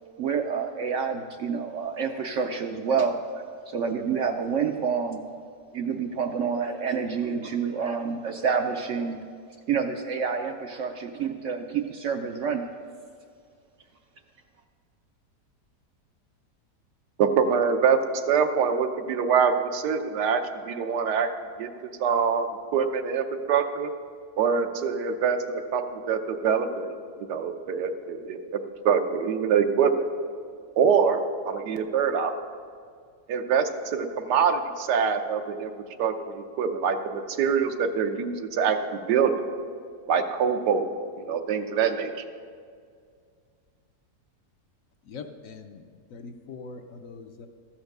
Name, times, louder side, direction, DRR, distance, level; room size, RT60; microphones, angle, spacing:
voice 1, 0.0-3.2 3.7-5.2 5.7-9.2 9.7-12.7, right 6 dB, 70° right, 5 dB, 0.7 m, -28 dB
voice 2, 17.2-18.0 18.3-21.3 21.6-22.5 22.7-23.9 24.4-28.6 28.8-30.1 30.8-31.2 31.5-32.3 33.3-35.7 36.0-38.8 39.1-39.3 40.1-40.9 41.2-42.1, right 6 dB, 85° right, 7 dB, 1.4 m, -24 dB
voice 3, 45.1-45.8 46.1-47.5, left 4 dB, 65° left, 6 dB, 0.9 m, -42 dB
14.0 x 5.8 x 6.5 m, 2.2 s
omnidirectional pair, 1.7 m